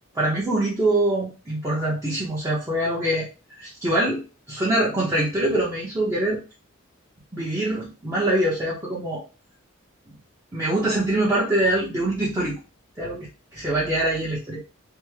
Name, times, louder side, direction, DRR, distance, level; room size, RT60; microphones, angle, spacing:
voice 1, 0.1-3.3 3.6-4.2 4.5-6.4 7.3-9.2 10.5-12.6 13.0-14.6, right 1 dB, 15° right, -5 dB, 0.7 m, -24 dB
3.4 x 2.0 x 3.2 m, 0.32 s
head